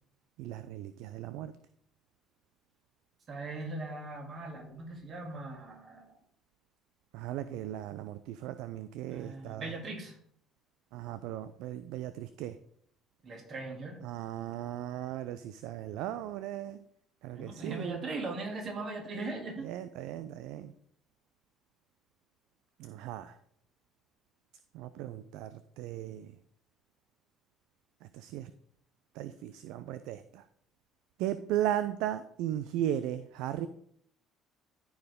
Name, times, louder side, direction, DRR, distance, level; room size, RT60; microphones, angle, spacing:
voice 1, 0.4-1.5 7.1-9.7 10.9-12.6 14.0-16.8 17.2-18.0 19.6-20.7 22.8-23.4 24.7-26.3 28.0-28.5 29.2-30.4 31.2-33.7, right 12 dB, 70° right, 13 dB, 0.4 m, -36 dB
voice 2, 3.3-6.2 9.0-10.2 13.2-14.0 17.3-19.7, right 2 dB, 45° right, 1 dB, 2.6 m, -39 dB
13.5 x 4.7 x 3.7 m, 0.66 s
hypercardioid pair, 55°, 0 cm